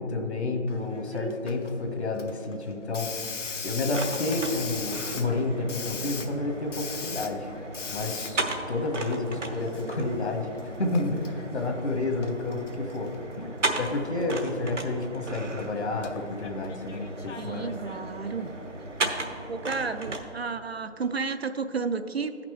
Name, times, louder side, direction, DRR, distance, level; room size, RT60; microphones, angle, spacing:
voice 1, 0.0-7.5 7.9-8.4 8.7-17.1 17.4-17.7, left 2 dB, 65° left, 2 dB, 1.4 m, -30 dB
Hiss, 0.7-19.1, left 5 dB, 85° left, 0.8 m, -41 dB
voice 2, 1.0-1.4 17.4-18.5 19.2-22.4, right 4 dB, 60° right, 10 dB, 0.4 m, -32 dB
sound 1, 3.9-20.2, right 2 dB, 80° right, 1.1 m, -36 dB
13.0 x 5.9 x 3.2 m, 2.7 s
figure-of-eight pair, 175°, 36 cm